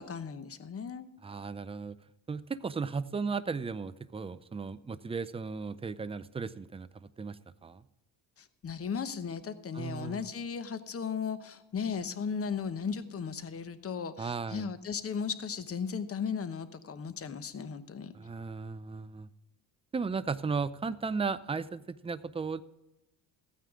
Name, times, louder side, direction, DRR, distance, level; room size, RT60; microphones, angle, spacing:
voice 1, 0.0-1.0 8.4-18.1, left 6 dB, 35° left, 11 dB, 1.0 m, -36 dB
voice 2, 1.2-2.0 2.3-6.9 7.2-7.8 9.7-10.3 14.2-14.7 18.1-19.3 19.9-22.6, right 5 dB, 15° right, 14 dB, 0.4 m, -35 dB
15.0 x 9.2 x 3.7 m, 0.97 s
cardioid pair, 115°, 40 cm